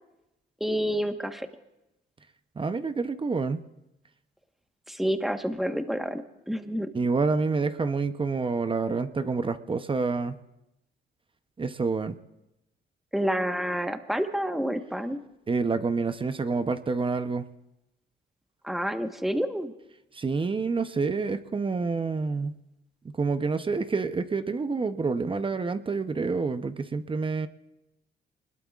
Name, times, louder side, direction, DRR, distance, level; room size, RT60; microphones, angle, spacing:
voice 1, 0.6-1.5 4.9-6.2 6.5-6.9 13.1-15.2 18.6-19.7, equal, ahead, 6 dB, 1.2 m, -28 dB
voice 2, 2.6-3.6 6.9-10.4 11.6-12.2 15.5-17.4 20.1-22.5 23.2-27.5, right 4 dB, 25° right, 10 dB, 0.7 m, -28 dB
25.0 x 20.5 x 2.4 m, 0.92 s
cardioid pair, 90°, 20 cm